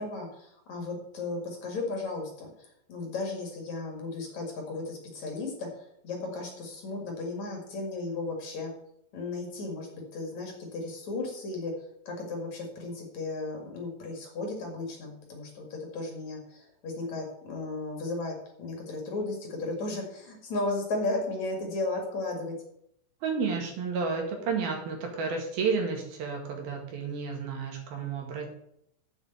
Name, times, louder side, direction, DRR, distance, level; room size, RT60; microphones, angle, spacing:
voice 1, 0.0-8.7 9.1-11.7 12.1-22.5, left 2 dB, 50° left, 1 dB, 3.0 m, -35 dB
voice 2, 23.2-28.5, right 5 dB, 70° right, 1 dB, 3.9 m, -31 dB
7.8 x 7.1 x 8.1 m, 0.73 s
omnidirectional pair, 4.5 m